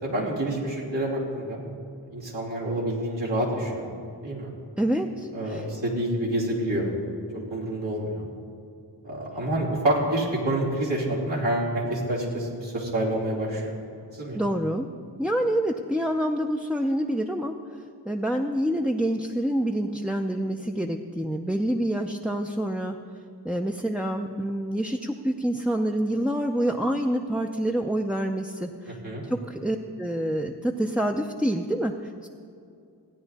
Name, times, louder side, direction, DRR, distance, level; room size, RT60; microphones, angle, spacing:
voice 1, 0.0-1.6 2.1-3.9 4.2-4.5 5.3-6.9 7.5-8.3 9.0-13.7 14.1-14.4 29.0-29.2, right 1 dB, 80° right, -6 dB, 3.1 m, -27 dB
voice 2, 4.8-5.7 14.3-14.9 15.2-17.5 18.1-23.0 23.4-32.3, right 1 dB, 5° right, 1 dB, 0.4 m, -27 dB
16.5 x 9.8 x 4.1 m, 2.5 s
wide cardioid pair, 60°, 44 cm